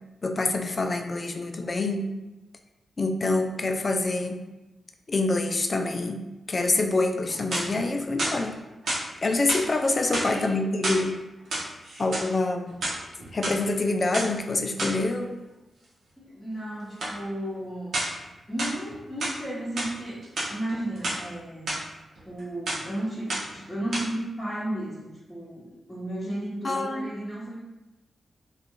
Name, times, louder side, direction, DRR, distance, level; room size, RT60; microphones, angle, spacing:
voice 1, 0.2-2.1 3.0-4.4 5.1-8.6 9.2-11.2 12.0-12.8 13.3-15.4 26.6-27.1, left 2 dB, 45° left, 5 dB, 0.3 m, -26 dB
sound 1, 7.3-7.9 8.2-9.0 9.5-9.7 10.1-11.0 11.4-12.3 12.7-13.5 14.1-14.3 14.8-15.0 17.0-17.2 17.9-18.2 18.6-19.4 19.8-19.9 20.2-21.2 21.7-21.8 22.2-22.4 22.7-22.9 23.3-23.6 23.9-24.0, right 1 dB, 70° right, 0.8 m, -30 dB
voice 2, 10.0-10.5 16.2-18.0 18.5-20.2 20.5-21.7 22.3-27.6, right 1 dB, 10° left, -10 dB, 0.9 m, -34 dB
2.4 x 2.3 x 3.0 m, 1.0 s
cardioid pair, 60°, 0 cm